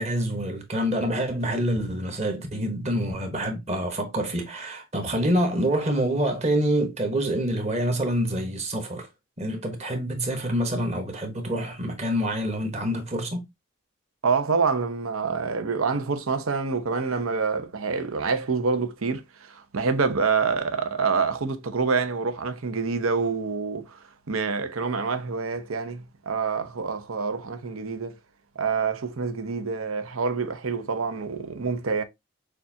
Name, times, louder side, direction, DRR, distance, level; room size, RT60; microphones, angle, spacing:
voice 1, 0.0-9.1 9.4-13.5, right 1 dB, 30° right, 1.0 m, -26 dB
voice 2, 14.2-24.0 24.3-28.1 28.6-32.0, right 5 dB, 90° right, 0.8 m, -27 dB
6.5 x 2.5 x 2.7 m
head